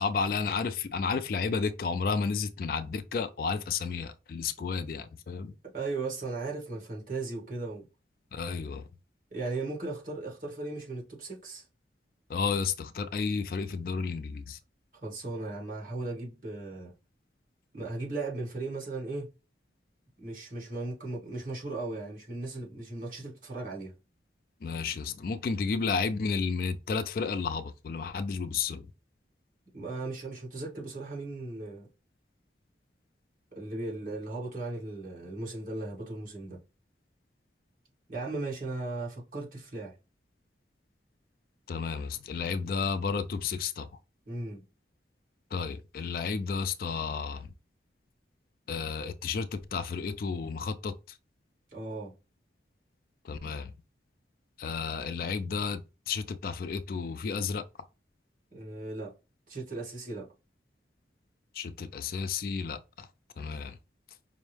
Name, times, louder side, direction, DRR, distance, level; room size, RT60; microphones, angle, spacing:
voice 1, 0.0-5.5 8.3-8.9 12.3-14.6 24.6-28.9 41.7-44.0 45.5-47.5 48.7-51.2 53.2-53.7 54.6-57.6 61.5-63.1 63.4-63.8, left 5 dB, 50° left, 0.3 m, -32 dB
voice 2, 5.7-7.9 9.3-11.6 14.9-16.9 17.7-19.3 20.2-23.9 29.7-31.9 33.6-36.6 38.1-39.9 44.3-44.6 51.7-52.1 58.5-59.1 59.5-60.3, right 2 dB, 50° right, 1.9 m, -37 dB
5.3 x 2.0 x 3.2 m
head